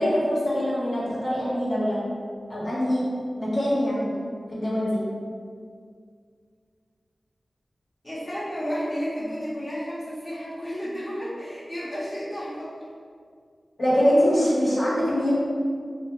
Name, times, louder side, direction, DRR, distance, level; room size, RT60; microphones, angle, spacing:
voice 1, 0.0-2.0 2.5-3.1 3.4-4.1 4.5-5.0 13.8-15.3, equal, 60° left, -9 dB, 0.8 m, -23 dB
voice 2, 8.0-12.7, equal, 25° left, -9 dB, 0.7 m, -32 dB
2.4 x 2.1 x 2.8 m, 2.1 s
cardioid pair, 50°, 0 cm